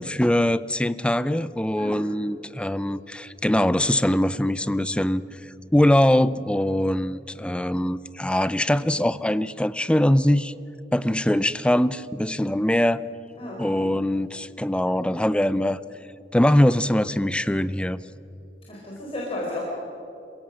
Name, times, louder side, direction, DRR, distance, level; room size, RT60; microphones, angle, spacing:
voice 1, 0.0-5.2 5.7-10.5 10.9-13.0 13.6-15.8 16.3-18.0, left 1 dB, 5° left, 16 dB, 0.5 m, -22 dB
voice 2, 1.8-2.1 13.4-13.9 18.7-19.7, left 1 dB, 35° left, -5 dB, 4.1 m, -33 dB
27.5 x 17.0 x 6.4 m, 2.8 s
head